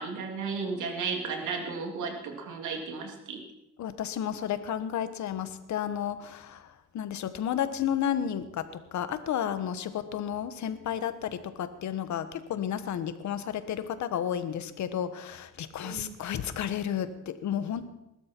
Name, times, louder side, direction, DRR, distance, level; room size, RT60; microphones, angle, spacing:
voice 1, 0.0-3.4 15.8-16.2, right 4 dB, 80° right, 3 dB, 3.0 m, -34 dB
voice 2, 3.8-17.9, left 9 dB, 70° left, 12 dB, 1.3 m, -32 dB
20.5 x 12.5 x 4.5 m, 0.91 s
cardioid pair, 90°, 30 cm